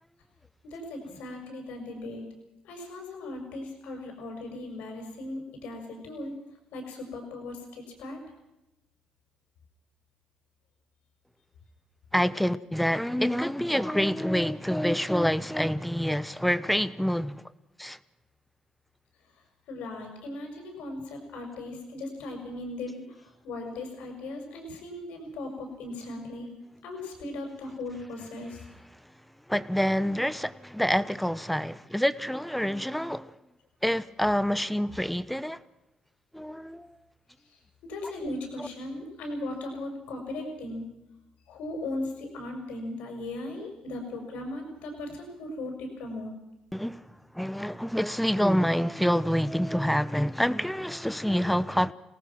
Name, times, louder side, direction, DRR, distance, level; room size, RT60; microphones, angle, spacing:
voice 1, 0.6-2.2 2.6-6.3 6.7-8.2 19.7-26.5 26.8-28.6 37.5-40.8 41.5-46.3, left 2 dB, 90° left, 6.5 m, -38 dB
voice 2, 12.1-17.4 17.8-18.0 29.5-33.3 33.8-35.6 36.3-37.0 38.6-38.7 46.7-47.0 47.3-51.9, equal, 5° left, 1.0 m, -27 dB
27.5 x 18.5 x 6.1 m
cardioid pair, 85°, 2 cm